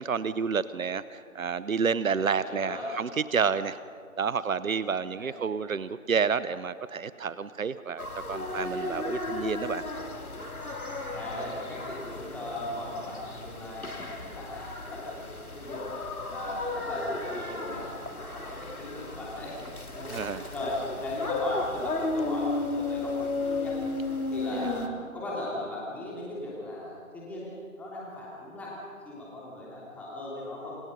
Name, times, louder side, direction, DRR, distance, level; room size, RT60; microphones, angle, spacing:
voice 1, 0.0-3.8 4.2-9.8 20.1-20.4 24.5-24.7, right 6 dB, 70° right, 15 dB, 0.9 m, -29 dB
voice 2, 2.1-2.9 5.2-5.4 11.1-15.9 16.3-23.8 24.3-28.8 29.0-30.8, left 1 dB, 5° left, -6 dB, 3.1 m, -38 dB
sound 1, 8.0-24.9, left 2 dB, 80° left, 3.2 m, -34 dB
28.5 x 24.5 x 5.4 m, 2.2 s
figure-of-eight pair, 150°, 43 cm